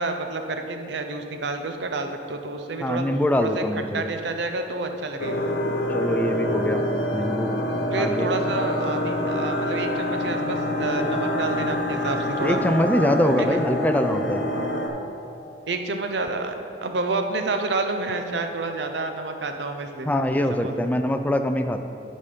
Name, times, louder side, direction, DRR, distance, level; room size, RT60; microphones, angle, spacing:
voice 1, 0.0-3.0 3.4-3.6 3.9-5.4 7.9-12.6 13.4-13.6 15.7-20.9, right 3 dB, 80° right, 6 dB, 0.6 m, -29 dB
voice 2, 2.8-4.1 5.9-6.8 7.1-7.5 8.0-8.3 12.4-14.4 20.1-21.8, left 1 dB, 10° left, 7 dB, 0.3 m, -23 dB
sound 1, 5.2-14.9, equal, 80° left, 0.8 m, -26 dB
10.5 x 4.3 x 5.1 m, 2.8 s
head